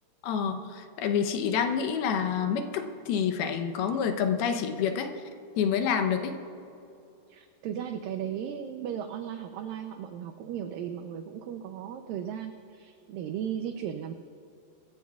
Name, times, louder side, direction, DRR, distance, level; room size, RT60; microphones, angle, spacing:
voice 1, 0.2-5.1 5.6-6.4, left 7 dB, 75° left, 6 dB, 2.6 m, -28 dB
voice 2, 7.3-14.1, right 9 dB, 85° right, 7 dB, 2.0 m, -36 dB
24.5 x 14.5 x 2.3 m, 2.6 s
omnidirectional pair, 4.7 m